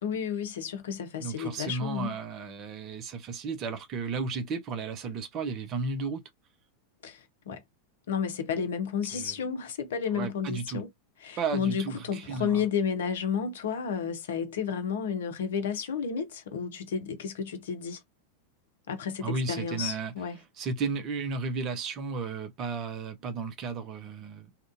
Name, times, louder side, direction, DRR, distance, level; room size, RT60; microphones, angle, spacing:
voice 1, 0.0-2.1 7.0-7.6 8.1-10.9 11.2-18.0 18.9-20.4, left 7 dB, 60° left, 0.7 m, -32 dB
voice 2, 1.2-6.2 9.1-9.3 10.1-10.8 11.4-12.6 19.2-20.1 20.6-24.5, right 4 dB, 35° right, 0.6 m, -34 dB
2.8 x 2.5 x 2.5 m
figure-of-eight pair, 90°, 0 cm